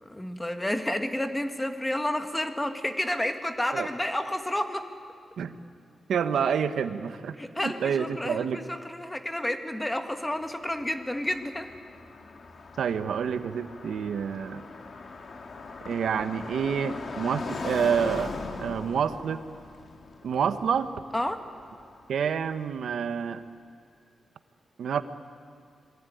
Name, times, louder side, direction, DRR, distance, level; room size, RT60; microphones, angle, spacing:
voice 1, 0.0-4.9 7.4-11.7 21.1-21.4, left 1 dB, 10° left, 6 dB, 1.7 m, -30 dB
voice 2, 6.1-8.6 12.8-14.6 15.9-18.3 18.6-19.4 20.2-20.9 22.1-23.4 24.8-25.0, right 7 dB, 85° right, 10 dB, 1.2 m, -28 dB
Car passing by, 10.4-22.4, left 3 dB, 50° left, 2.1 m, -40 dB
26.5 x 22.5 x 9.3 m, 2.3 s
wide cardioid pair, 125°, 0 cm